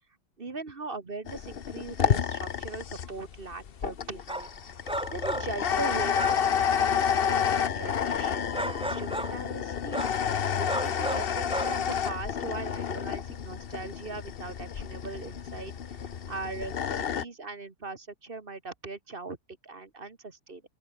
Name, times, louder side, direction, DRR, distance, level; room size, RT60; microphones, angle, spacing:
voice 1, 0.4-19.4 19.6-20.6, right 3 dB, 35° right, 1.7 m, -40 dB
sound 1, 1.3-17.2, left 8 dB, 45° left, 0.8 m, -30 dB
sound 2, 4.3-4.5 4.9-5.6 6.1-6.5 8.5-9.4 9.9-10.2 10.6-11.8, right 1 dB, 5° right, 0.4 m, -34 dB
open air
omnidirectional pair, 1.9 m